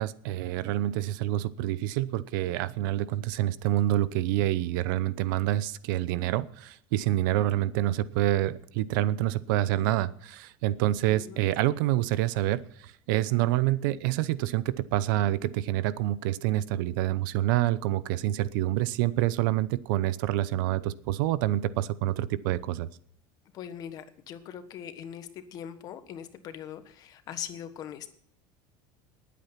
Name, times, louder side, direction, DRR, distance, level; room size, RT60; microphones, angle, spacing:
voice 1, 0.0-22.9, right 14 dB, 75° right, 17 dB, 0.8 m, -27 dB
voice 2, 11.1-11.4 23.5-28.1, left 9 dB, 35° left, 10 dB, 1.4 m, -41 dB
19.5 x 8.5 x 5.9 m, 0.69 s
cardioid pair, 170°, 11 cm